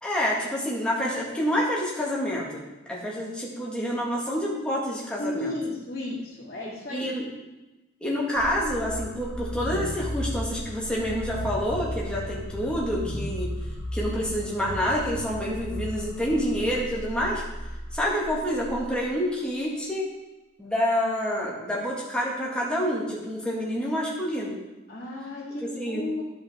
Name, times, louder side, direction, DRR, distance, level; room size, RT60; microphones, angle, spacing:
voice 1, 0.0-2.6 2.9-5.5 6.9-7.3 8.0-13.5 13.9-17.4 17.9-20.1 20.6-24.6 25.8-26.0, equal, 5° left, -5 dB, 1.8 m, -28 dB
voice 2, 5.2-7.1 24.9-26.2, left 1 dB, 50° left, -7 dB, 2.4 m, -33 dB
sound 1, 8.4-19.2, equal, 85° left, 1.2 m, -35 dB
13.0 x 5.2 x 3.6 m, 1.1 s
head